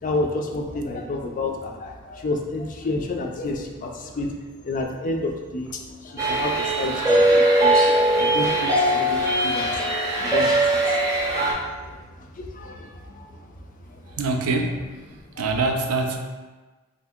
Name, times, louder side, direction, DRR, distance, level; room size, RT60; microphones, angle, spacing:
voice 1, 0.0-4.4 4.6-7.8 8.2-12.0 12.4-13.3 13.9-14.0 15.4-15.5, left 2 dB, 40° left, 2 dB, 0.4 m, -30 dB
sound 1, 6.2-11.5, right 1 dB, 15° right, 0.7 m, -20 dB
voice 2, 14.2-14.8 15.4-16.2, right 3 dB, 85° right, 3 dB, 0.4 m, -24 dB
2.7 x 2.7 x 3.5 m, 1.3 s
head